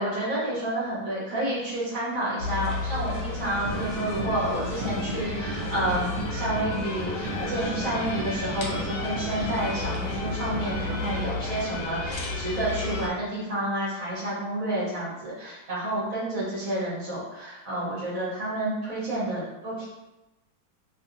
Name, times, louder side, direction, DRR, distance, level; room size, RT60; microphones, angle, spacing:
voice 1, 0.0-19.9, right 1 dB, 55° right, -7 dB, 1.2 m, -30 dB
sound 1, 2.4-13.1, left 3 dB, 80° left, 1.3 m, -33 dB
sound 2, 3.6-11.5, right 1 dB, 75° right, 0.6 m, -34 dB
3.1 x 2.6 x 2.5 m, 1.0 s
omnidirectional pair, 2.0 m